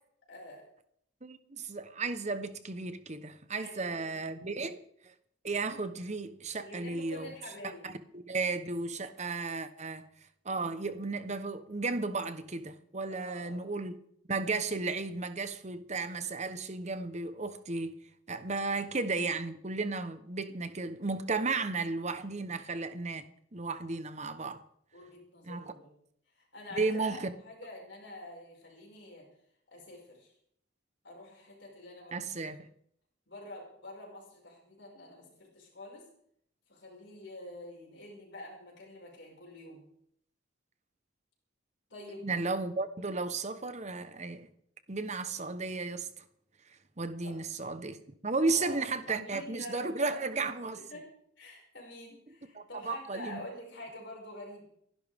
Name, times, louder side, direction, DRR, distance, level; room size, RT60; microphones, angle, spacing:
voice 1, 0.3-0.6 3.5-4.6 6.6-7.9 8.3-8.4 13.1-13.7 24.9-25.9 26.4-29.2 29.7-30.3 31.0-32.2 33.3-36.1 36.7-39.8 41.9-42.2 47.2-47.4 48.4-50.5 50.7-51.1 51.4-54.6, left 1 dB, 65° left, 5.8 m, -47 dB
voice 2, 1.2-4.8 5.0-5.1 5.4-7.3 7.8-10.0 10.4-14.0 14.3-18.0 18.3-23.3 23.5-24.6 25.4-25.7 26.8-27.3 32.1-32.7 42.2-44.5 44.9-46.2 47.0-48.0 48.2-50.8 52.5-53.4, right 3 dB, 35° right, 1.0 m, -34 dB
28.5 x 11.5 x 3.6 m
head